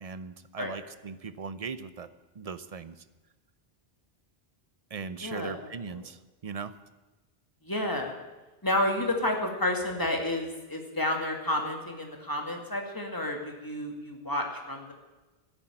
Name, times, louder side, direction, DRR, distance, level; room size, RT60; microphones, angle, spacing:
voice 1, 0.0-2.1 2.4-3.0 4.9-6.7, right 5 dB, 40° right, 13 dB, 0.7 m, -39 dB
voice 2, 5.2-5.5 5.9-6.0 7.6-8.1 8.6-14.9, left 1 dB, 20° left, 2 dB, 2.2 m, -30 dB
13.5 x 10.0 x 8.9 m, 1.2 s
omnidirectional pair, 1.0 m